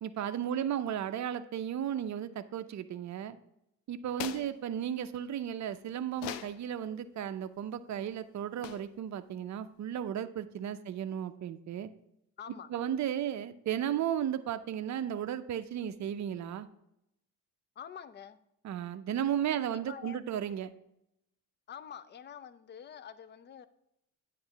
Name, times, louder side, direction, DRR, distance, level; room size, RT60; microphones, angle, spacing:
voice 1, 0.0-3.4 3.9-11.9 12.7-16.7 18.6-20.7, right 9 dB, 40° right, 10 dB, 0.6 m, -34 dB
sound 1, 4.1-4.6 6.1-6.6 8.6-9.0, left 11 dB, 60° left, 0.7 m, -40 dB
voice 2, 12.4-12.7 17.8-18.4 19.5-20.2 21.7-23.7, left 8 dB, 25° left, 14 dB, 0.5 m, -47 dB
9.5 x 3.3 x 5.8 m, 0.81 s
hypercardioid pair, 55°, 46 cm